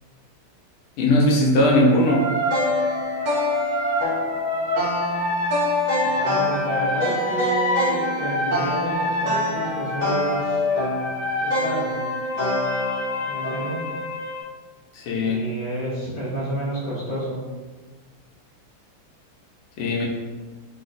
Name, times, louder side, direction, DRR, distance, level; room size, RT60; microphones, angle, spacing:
voice 1, 1.0-2.3 14.9-15.5 19.8-20.1, left 1 dB, 80° left, -2 dB, 1.4 m, -19 dB
sound 1, 2.1-14.4, left 1 dB, 90° right, 0.6 m, -24 dB
voice 2, 6.0-10.6 11.4-12.1 13.3-13.8 15.2-17.4, right 1 dB, 45° left, -8 dB, 0.5 m, -30 dB
3.8 x 2.1 x 2.5 m, 1.4 s
omnidirectional pair, 2.4 m